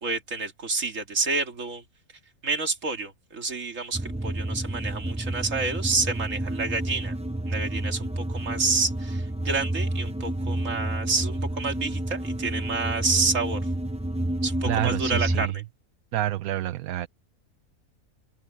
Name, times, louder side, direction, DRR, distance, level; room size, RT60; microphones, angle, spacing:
voice 1, 0.0-1.8 2.4-7.1 7.5-13.6 14.4-15.5, right 4 dB, 60° right, 2.5 m, -29 dB
sound 1, 3.9-15.5, right 1 dB, 5° right, 0.5 m, -30 dB
voice 2, 14.6-15.6 16.1-17.1, right 13 dB, 75° right, 1.1 m, -28 dB
open air
omnidirectional pair, 1.5 m